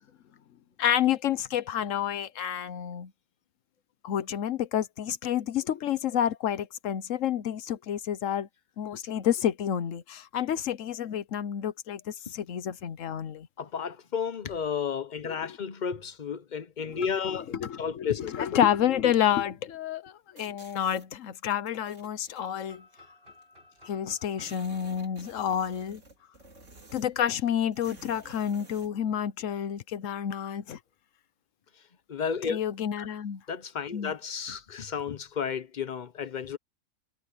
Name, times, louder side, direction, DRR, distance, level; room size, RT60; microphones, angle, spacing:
voice 1, 0.8-3.1 4.0-8.5 8.8-13.5 15.2-15.6 16.9-17.1 17.5-22.8 23.9-26.0 26.9-30.8 32.5-33.4 33.9-34.1, left 10 dB, 80° left, 1.2 m, -29 dB
voice 2, 13.6-18.4 32.1-32.6 33.0-33.1 33.5-36.6, left 7 dB, 45° left, 0.7 m, -32 dB
sound 1, 20.4-21.1 21.7-22.5 23.4-23.5 23.8-23.9 24.1-27.2 27.7-28.9, right 3 dB, 75° right, 4.3 m, -52 dB
sound 2, 22.4-26.2, left 2 dB, 50° right, 8.3 m, -56 dB
omnidirectional pair, 1.3 m